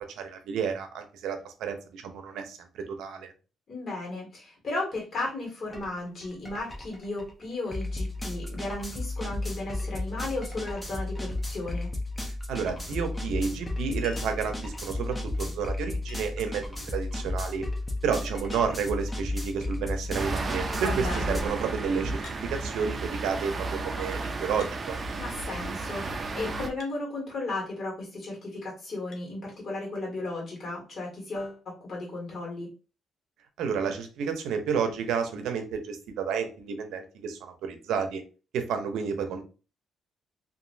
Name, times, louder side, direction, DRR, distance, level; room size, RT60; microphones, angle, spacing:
voice 1, 0.2-3.3 12.5-17.6 18.0-22.2 22.5-25.0 33.6-38.2 38.5-39.4, right 6 dB, 85° right, 6 dB, 0.6 m, -31 dB
voice 2, 3.7-11.9 20.7-21.4 25.2-32.7, left 2 dB, 45° left, -2 dB, 1.5 m, -35 dB
sound 1, 5.7-5.9 6.2-21.4, left 2 dB, 15° left, 0.8 m, -33 dB
Chink clink, 14.0-14.5 16.1-16.5 17.9-18.0 18.2-18.3 18.5-19.0 19.7-20.1 22.2-22.5 23.5-23.6 24.6-24.8 26.8-27.0 29.1-29.3 30.7-30.8, left 6 dB, 60° left, 0.6 m, -49 dB
sound 2, 20.1-26.7, right 3 dB, 35° right, 0.4 m, -33 dB
2.9 x 2.5 x 2.6 m, 0.34 s
cardioid pair, 90°, 0 cm